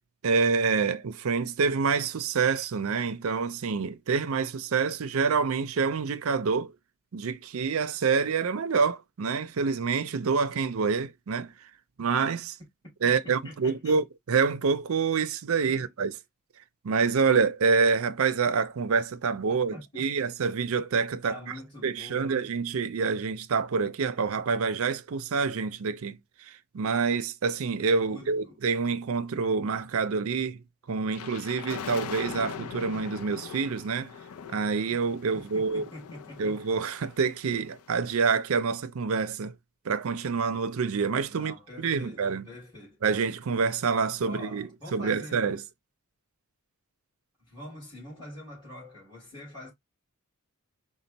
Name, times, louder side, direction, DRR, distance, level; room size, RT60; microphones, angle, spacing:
voice 1, 0.2-6.7 7.1-11.5 12.0-12.6 13.0-16.1 16.8-21.4 21.8-26.2 26.5-34.1 34.5-35.8 36.4-39.5 39.9-42.5 43.0-45.6, right 5 dB, 65° right, 0.5 m, -27 dB
voice 2, 13.0-14.0 15.6-15.9 19.7-20.3 21.3-22.5 28.0-28.6 35.3-36.6 41.3-43.0 44.2-45.5 47.4-49.7, left 1 dB, 20° left, 2.7 m, -45 dB
sound 1, 31.1-37.9, left 7 dB, 80° left, 0.5 m, -42 dB
4.4 x 2.2 x 3.9 m
head